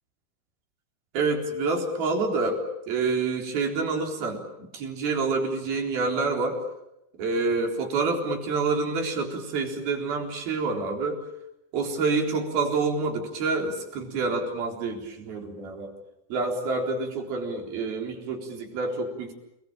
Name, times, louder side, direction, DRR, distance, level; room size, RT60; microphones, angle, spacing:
voice 1, 1.1-6.6 7.2-11.2 11.7-15.9 16.3-19.3, right 3 dB, 80° right, 2 dB, 5.9 m, -27 dB
29.5 x 21.0 x 8.9 m, 0.86 s
omnidirectional pair, 4.2 m